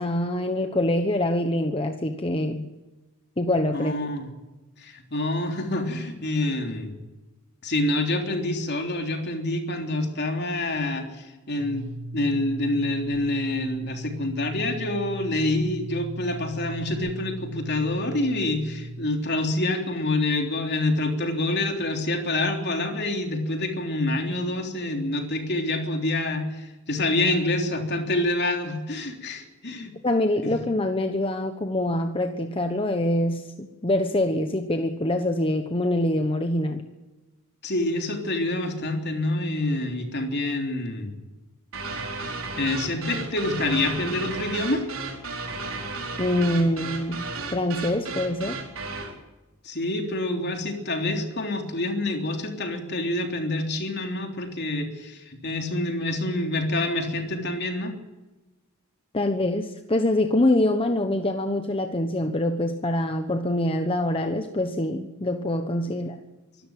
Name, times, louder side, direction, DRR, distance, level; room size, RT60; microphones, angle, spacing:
voice 1, 0.0-2.7 3.4-3.9 30.0-36.9 46.2-47.3 47.5-48.6 59.1-66.2, left 1 dB, 25° left, 6 dB, 1.1 m, -25 dB
voice 2, 3.7-4.3 4.8-6.9 7.6-29.9 30.4-30.5 37.6-41.1 42.1-44.9 49.6-58.0 65.9-66.0, left 2 dB, 50° left, 3 dB, 3.5 m, -27 dB
sound 1, 11.6-19.1, right 1 dB, 85° right, 1.8 m, -37 dB
sound 2, 41.7-49.2, right 3 dB, 65° right, 4.5 m, -34 dB
25.0 x 13.5 x 9.1 m, 1.1 s
head